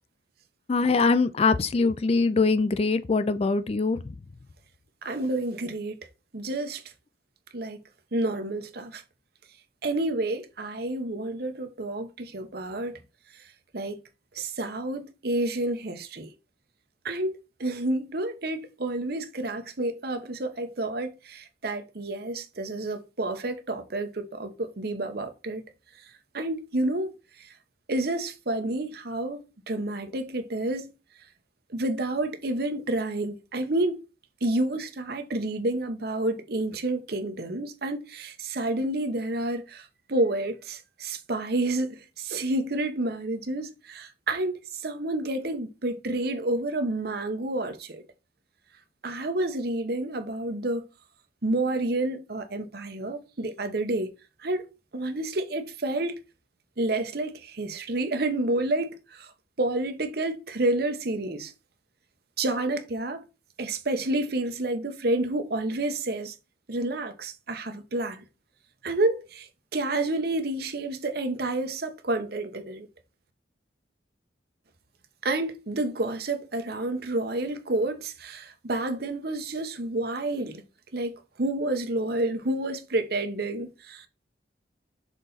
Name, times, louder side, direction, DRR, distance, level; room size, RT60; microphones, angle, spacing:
voice 1, 0.7-4.0, left 4 dB, 35° left, 0.3 m, -23 dB
voice 2, 5.0-6.1 6.3-6.8 7.5-7.8 8.1-9.0 9.8-12.9 13.7-14.0 14.3-16.3 17.0-25.6 26.3-27.5 27.9-30.9 31.7-34.0 34.4-48.0 49.0-50.8 51.4-54.1 54.4-54.7 54.9-56.1 56.8-59.3 59.6-61.5 62.4-63.2 63.6-66.3 66.7-68.2 68.8-72.9 75.2-80.6 80.9-84.1, right 2 dB, 55° right, 1.0 m, -29 dB
6.3 x 4.0 x 3.9 m
head